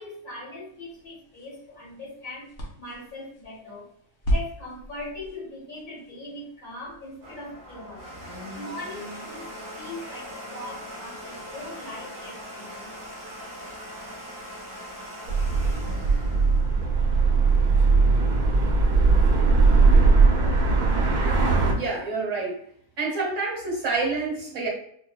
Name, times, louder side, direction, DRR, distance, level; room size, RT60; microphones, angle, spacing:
voice 1, 0.0-2.5 2.8-3.9 4.3-8.1 8.5-12.9, left 2 dB, 70° left, -7 dB, 2.1 m, -40 dB
sound 1, 0.7-7.3, equal, 55° left, 1.2 m, -35 dB
Domestic sounds home sounds, 6.8-17.5, equal, 20° right, 0.6 m, -40 dB
sound 2, 15.3-21.7, right 4 dB, 70° right, 1.3 m, -19 dB
voice 2, 21.7-22.6 23.0-24.7, right 3 dB, 55° right, -2 dB, 1.4 m, -28 dB
5.1 x 2.6 x 2.3 m, 0.66 s
omnidirectional pair, 1.6 m